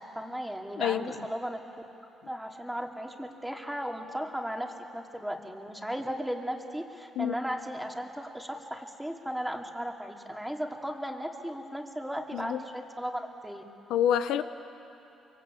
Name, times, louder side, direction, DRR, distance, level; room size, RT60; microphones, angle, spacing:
voice 1, 0.1-1.6 2.3-13.6, equal, 5° right, 2 dB, 2.6 m, -36 dB
voice 2, 0.8-1.2 7.2-7.4 12.3-12.6 13.9-14.4, left 10 dB, 85° left, 10 dB, 0.8 m, -27 dB
25.5 x 23.0 x 8.5 m, 2.9 s
cardioid pair, 90°, 0 cm